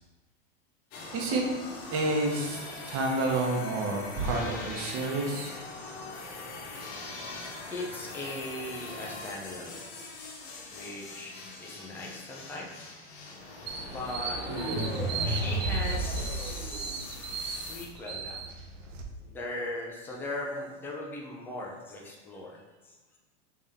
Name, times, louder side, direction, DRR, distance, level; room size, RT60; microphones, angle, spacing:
sound 1, 0.9-17.9, left 3 dB, 50° left, 1.1 m, -42 dB
voice 1, 1.1-1.4 1.9-2.6 2.9-5.5, right 2 dB, 35° right, -1 dB, 1.0 m, -29 dB
voice 2, 7.7-9.9 10.7-12.7 13.6-14.4 15.2-18.4 18.8-22.9, left 2 dB, 5° left, -2 dB, 0.4 m, -39 dB
sound 2, 13.7-19.0, right 5 dB, 85° right, 0.8 m, -38 dB
sound 3, 14.3-17.3, right 1 dB, 50° right, 1.4 m, -32 dB
4.1 x 3.5 x 3.5 m, 1.2 s
supercardioid pair, 135°, 37 cm